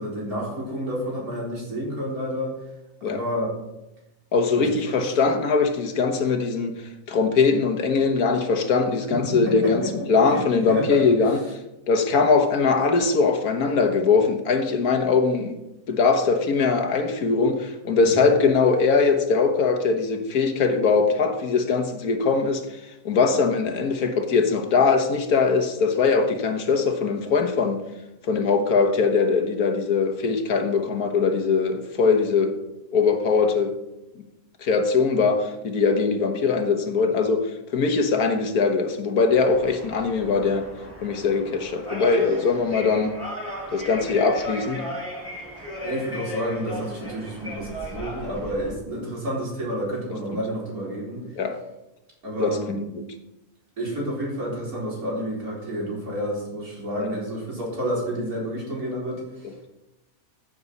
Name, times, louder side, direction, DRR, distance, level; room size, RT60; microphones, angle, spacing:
voice 1, 0.0-2.5 3.0-3.5 4.5-5.0 9.1-9.9 10.2-11.0 18.0-18.3 45.8-51.2 52.2-52.9 53.8-59.5, equal, 90° right, 4.4 m, -30 dB
voice 2, 4.3-9.8 10.1-11.6 11.9-15.6 15.9-27.8 28.2-32.6 32.9-33.7 34.6-40.7 41.0-43.2 43.7-44.8 50.3-50.4 51.4-51.6 52.4-52.6 57.0-57.1, left 4 dB, 85° left, 1.7 m, -21 dB
sound 1, 39.3-48.7, left 1 dB, 10° right, 4.7 m, -36 dB
14.5 x 7.1 x 4.1 m
omnidirectional pair, 1.5 m